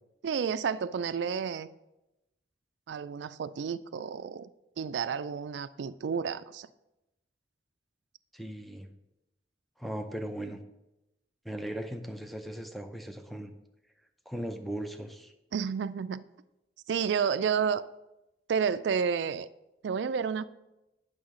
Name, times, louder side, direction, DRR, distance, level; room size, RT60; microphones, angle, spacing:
voice 1, 0.2-1.7 2.9-4.5 4.8-6.7 15.5-16.2 16.9-17.8 18.5-19.5 19.8-20.4, right 6 dB, 80° right, 14 dB, 0.3 m, -30 dB
voice 2, 8.3-8.9 9.8-10.6 11.4-13.5 14.3-15.3, right 1 dB, ahead, 5 dB, 0.6 m, -38 dB
8.7 x 6.2 x 3.8 m, 0.94 s
head